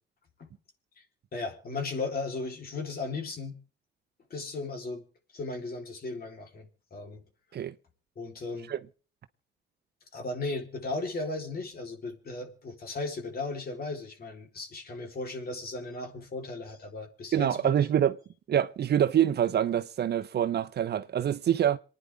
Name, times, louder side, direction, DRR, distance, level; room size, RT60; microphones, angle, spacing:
voice 1, 1.3-3.6 4.3-5.1 5.3-7.2 8.2-8.7 10.1-17.7, left 3 dB, 50° left, 4.0 m, -36 dB
voice 2, 17.3-18.2 18.5-21.8, right 10 dB, 55° right, 0.8 m, -25 dB
27.5 x 9.8 x 3.6 m
cardioid pair, 90°, 20 cm